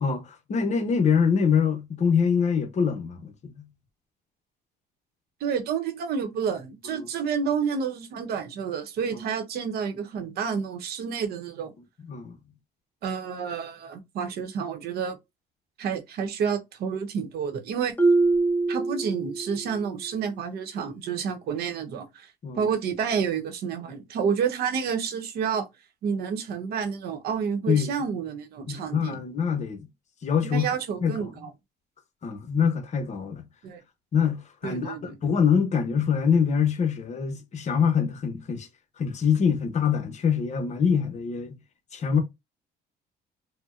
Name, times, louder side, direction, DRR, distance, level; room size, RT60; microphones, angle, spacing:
voice 1, 0.0-3.7 12.1-12.4 22.4-22.7 27.7-27.9 28.7-29.9 30.2-30.6 31.0-31.3 32.2-33.5 34.1-35.0 35.2-38.7 39.0-41.6 41.9-42.2, left 6 dB, 45° left, 0.8 m, -24 dB
voice 2, 5.4-11.7 13.0-15.2 15.8-17.9 18.7-22.3 22.5-25.7 26.0-29.2 30.4-31.5 33.6-33.8 34.6-35.2, right 6 dB, 70° right, 0.8 m, -29 dB
Marimba xylophone, 18.0-19.7, right 3 dB, 10° left, 0.6 m, -23 dB
4.2 x 2.1 x 2.4 m
cardioid pair, 110°, 17 cm